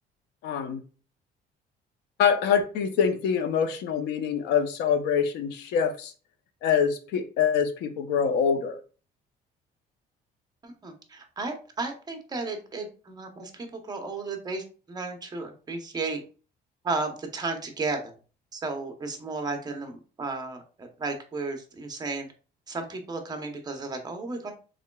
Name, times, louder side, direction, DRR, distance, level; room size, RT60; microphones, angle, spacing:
voice 1, 0.4-0.8 2.2-6.1 6.6-8.8, left 7 dB, 80° left, 8 dB, 0.7 m, -25 dB
voice 2, 10.6-16.2 16.8-18.2 18.5-22.3 22.7-24.5, right 3 dB, 25° right, 5 dB, 0.8 m, -34 dB
4.8 x 3.8 x 2.3 m, 0.37 s
cardioid pair, 145°, 17 cm